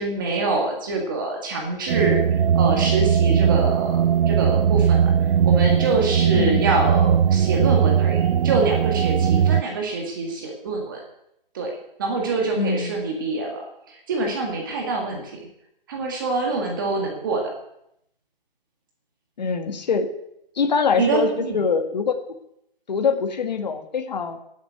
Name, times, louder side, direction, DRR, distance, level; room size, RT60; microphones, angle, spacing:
voice 1, 0.0-2.2 2.5-11.0 11.5-11.7 12.0-15.4 15.9-17.5 21.0-21.7, right 3 dB, 20° right, 1 dB, 1.8 m, -25 dB
sound 1, 1.9-9.6, right 8 dB, 75° right, 0.5 m, -19 dB
voice 2, 12.6-13.0 19.4-20.1 20.6-21.3 21.5-22.1 22.9-24.4, left 5 dB, 45° left, 6 dB, 1.7 m, -23 dB
11.0 x 7.9 x 9.4 m, 0.78 s
hypercardioid pair, 175°, 29 cm